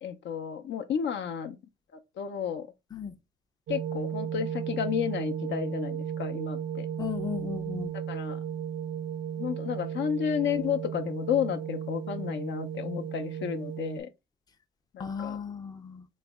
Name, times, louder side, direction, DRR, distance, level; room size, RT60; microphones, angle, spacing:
voice 1, 0.0-1.6 2.2-2.7 3.7-6.9 8.1-8.4 9.4-14.1 14.9-15.4, left 8 dB, 65° left, 0.6 m, -32 dB
sound 1, 3.7-14.0, right 9 dB, 65° right, 0.5 m, -35 dB
voice 2, 7.0-7.9 15.0-16.1, left 7 dB, 20° left, 0.5 m, -35 dB
4.0 x 2.1 x 3.4 m
cardioid pair, 90°, 20 cm